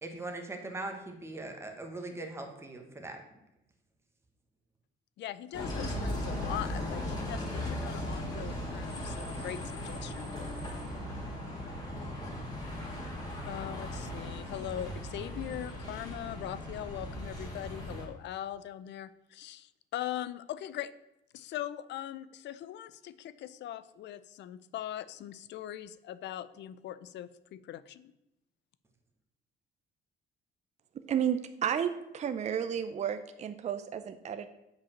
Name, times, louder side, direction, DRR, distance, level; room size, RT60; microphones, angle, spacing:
voice 1, 0.0-3.2, right 2 dB, 15° right, 3 dB, 1.5 m, -40 dB
voice 2, 5.2-10.3 13.4-20.9 21.3-28.1, left 12 dB, 65° left, 16 dB, 0.6 m, -41 dB
Bus, 5.5-18.0, left 1 dB, 20° left, 2.6 m, -38 dB
voice 3, 31.1-34.5, right 8 dB, 35° right, 9 dB, 0.6 m, -32 dB
7.1 x 5.3 x 7.3 m, 0.88 s
cardioid pair, 125°, 20 cm